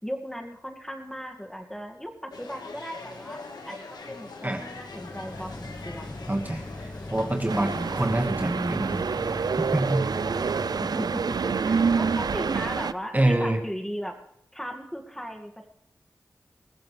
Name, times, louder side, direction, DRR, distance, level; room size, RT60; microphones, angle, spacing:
voice 1, 0.0-3.4 3.7-6.2 10.8-14.2 14.5-15.7, equal, 5° left, 4 dB, 2.3 m, -37 dB
sound 1, 2.3-8.1, left 3 dB, 90° left, 1.8 m, -42 dB
sound 2, 4.5-11.1, left 1 dB, 25° left, 1.7 m, -40 dB
voice 2, 6.3-9.1 9.7-10.2 13.1-13.6, right 1 dB, 25° right, 3 dB, 1.8 m, -26 dB
sound 3, 7.5-12.9, right 5 dB, 75° right, 0.5 m, -27 dB
22.0 x 15.0 x 3.4 m, 0.78 s
cardioid pair, 40°, 7 cm